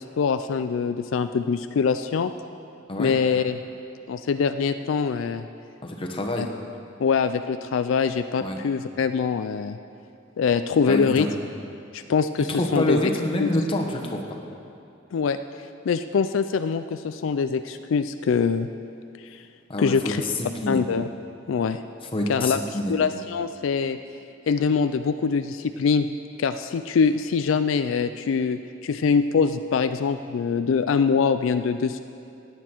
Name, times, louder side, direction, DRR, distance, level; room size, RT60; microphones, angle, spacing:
voice 1, 0.0-2.3 3.0-3.6 4.1-5.4 6.4-6.5 7.0-9.8 10.4-11.3 11.9-13.0 13.4-13.5 15.1-15.4 15.9-18.7 19.2-19.4 19.8-20.2 20.7-21.1 21.5-21.8 22.3-22.6 22.9-24.0 24.5-26.1 26.4-32.0, left 5 dB, 80° left, 10 dB, 0.4 m, -23 dB
voice 2, 5.8-6.5 8.4-8.6 10.9-11.2 12.5-14.4 19.7-20.8 22.1-23.0, left 1 dB, 25° left, 1 dB, 1.1 m, -27 dB
16.0 x 9.2 x 4.5 m, 2.7 s
head